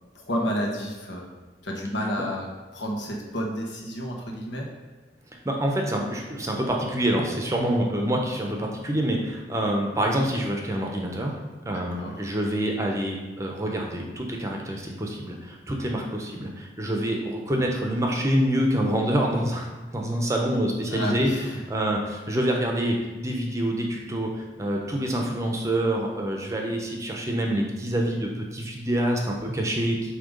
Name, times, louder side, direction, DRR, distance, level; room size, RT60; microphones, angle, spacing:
voice 1, 0.1-1.3 1.6-4.7 11.7-12.2 20.9-21.6, equal, 80° left, -1 dB, 1.2 m, -31 dB
voice 2, 5.4-11.4 11.7-21.3 21.7-30.1, right 1 dB, 15° right, 1 dB, 0.7 m, -26 dB
7.6 x 2.8 x 5.2 m, 1.2 s
head